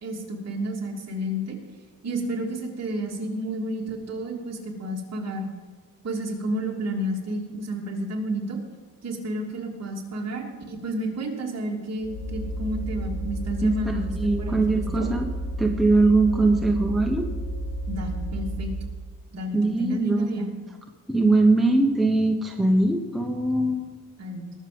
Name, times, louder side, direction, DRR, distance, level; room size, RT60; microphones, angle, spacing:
voice 1, 0.0-1.6 2.0-5.5 6.0-8.6 9.0-15.1 17.9-18.7 19.3-20.5 24.2-24.5, right 1 dB, 45° right, -1 dB, 3.0 m, -31 dB
sound 1, 12.0-18.9, right 1 dB, 75° left, 3.9 m, -31 dB
voice 2, 13.6-15.3 15.6-17.3 19.5-20.6 21.1-23.9, right 2 dB, ahead, 2 dB, 1.0 m, -22 dB
20.0 x 7.4 x 5.3 m, 1.4 s
cardioid pair, 130°, 35 cm